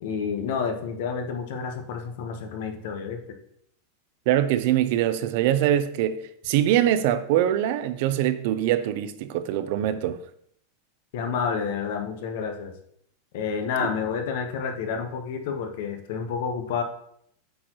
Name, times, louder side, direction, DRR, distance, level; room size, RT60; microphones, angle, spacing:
voice 1, 0.0-3.2 11.1-12.7 13.3-16.8, left 6 dB, 60° left, 1.0 m, -29 dB
voice 2, 4.3-10.2, right 11 dB, 55° right, 0.5 m, -23 dB
8.3 x 4.5 x 3.0 m
supercardioid pair, 155°, 0 cm